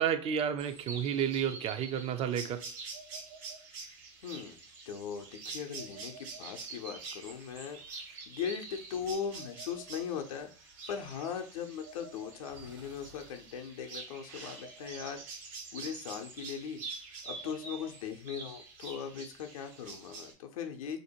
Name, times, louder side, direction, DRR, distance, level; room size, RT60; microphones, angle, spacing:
voice 1, 0.0-2.6, right 8 dB, 35° right, 0.4 m, -31 dB
sound 1, 0.6-20.3, right 4 dB, 70° right, 1.1 m, -46 dB
voice 2, 4.2-4.6 4.9-10.5 10.9-15.2 15.7-16.8 17.3-21.0, left 7 dB, 85° left, 0.5 m, -39 dB
2.6 x 2.1 x 2.8 m
hypercardioid pair, 95°, 17 cm